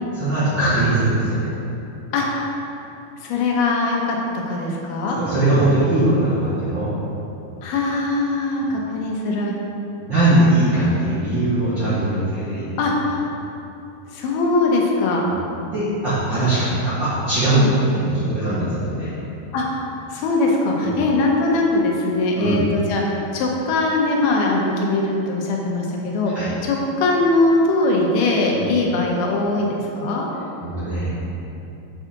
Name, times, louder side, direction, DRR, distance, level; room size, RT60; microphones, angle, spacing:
voice 1, 0.1-1.5 5.1-6.9 8.6-8.7 10.0-12.6 15.2-15.4 15.7-17.6 17.9-19.1 20.8-20.9 22.4-22.6 26.3-26.5 28.5-28.7 30.6-31.2, right 2 dB, 60° right, -11 dB, 1.2 m, -20 dB
voice 2, 2.1-2.5 3.2-5.2 7.6-9.6 12.8-13.3 14.1-15.3 17.5-17.7 19.5-19.8 20.1-23.0 23.3-26.3 26.6-30.3, left 2 dB, 80° left, -1 dB, 2.8 m, -21 dB
7.0 x 4.8 x 5.8 m, 2.8 s
omnidirectional pair, 4.4 m